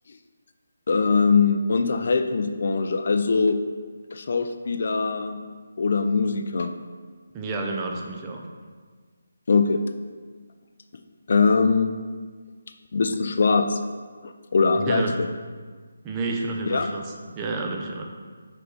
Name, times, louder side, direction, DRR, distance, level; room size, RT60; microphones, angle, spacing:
voice 1, 0.9-3.6 4.1-5.4 5.8-6.7 9.5-9.8 11.3-11.9 12.9-13.8 14.2-15.3 16.7-16.9, left 4 dB, 55° left, 8 dB, 0.5 m, -22 dB
voice 2, 7.3-8.4 14.7-15.1 16.0-18.0, right 3 dB, 20° right, 1 dB, 0.7 m, -30 dB
5.6 x 5.5 x 4.0 m, 1.6 s
figure-of-eight pair, 160°, 0 cm